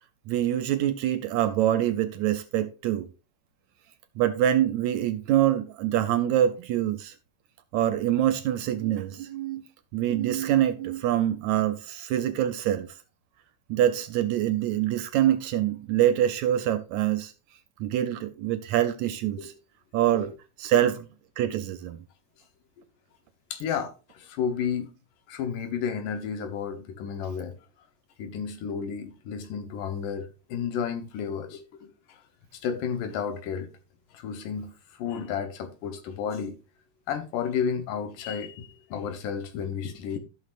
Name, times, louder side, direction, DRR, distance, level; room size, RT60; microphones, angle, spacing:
voice 1, 0.3-3.1 4.2-7.2 7.7-9.6 9.9-12.9 13.7-17.3 17.8-19.5 19.9-20.3 20.6-21.1 21.4-22.0, right 11 dB, 75° right, 1.8 m, -25 dB
voice 2, 23.5-24.9 25.3-27.5 28.2-32.2 32.6-33.7 34.1-34.7 35.0-36.6 37.1-40.2, left 7 dB, 85° left, 2.7 m, -32 dB
14.5 x 6.0 x 2.5 m
omnidirectional pair, 3.7 m